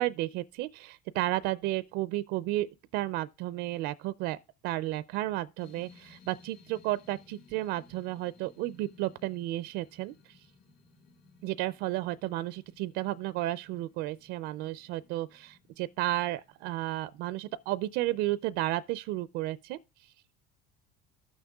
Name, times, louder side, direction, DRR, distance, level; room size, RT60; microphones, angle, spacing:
voice 1, 0.0-4.4 4.6-10.4 11.4-19.8, right 16 dB, 65° right, 0.4 m, -33 dB
sound 1, 5.6-19.0, left 4 dB, 50° left, 1.8 m, -60 dB
14.5 x 6.4 x 2.3 m
supercardioid pair, 115°, 19 cm